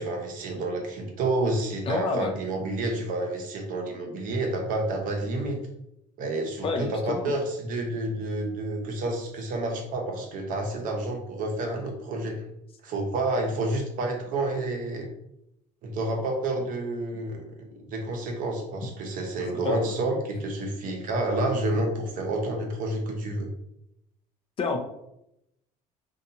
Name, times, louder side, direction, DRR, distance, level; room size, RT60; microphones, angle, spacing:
voice 1, 0.0-5.6 6.2-12.4 12.8-15.1 15.8-17.6 17.9-23.5, right 2 dB, 60° right, 2 dB, 0.7 m, -29 dB
voice 2, 1.9-2.4 6.6-7.3 19.6-19.9 24.6-24.8, left 4 dB, 40° left, 4 dB, 0.4 m, -28 dB
2.7 x 2.2 x 2.6 m, 0.82 s
cardioid pair, 115°, 15 cm